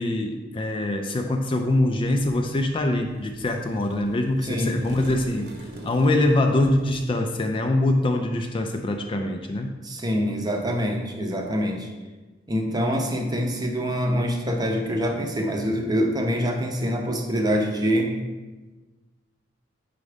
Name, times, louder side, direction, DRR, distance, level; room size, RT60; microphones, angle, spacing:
voice 1, 0.0-9.7, left 1 dB, 25° left, 4 dB, 0.3 m, -24 dB
sound 1, 1.7-7.0, right 1 dB, 55° right, 1.0 m, -43 dB
voice 2, 4.4-4.8 9.8-11.9 12.5-18.2, equal, 20° right, 2 dB, 0.7 m, -25 dB
5.2 x 4.8 x 5.0 m, 1.2 s
head